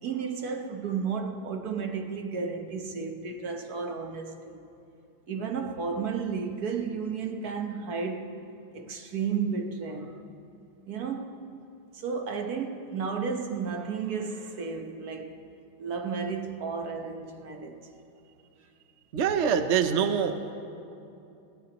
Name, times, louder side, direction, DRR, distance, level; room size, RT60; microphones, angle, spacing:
voice 1, 0.0-4.6 5.3-8.4 8.7-10.2 10.9-11.4 11.9-15.4 15.8-17.8 20.0-20.1, right 5 dB, 55° right, 1.4 m, -33 dB
voice 2, 19.1-20.3, right 7 dB, 70° right, 0.6 m, -24 dB
26.0 x 17.0 x 3.0 m
omnidirectional pair, 2.1 m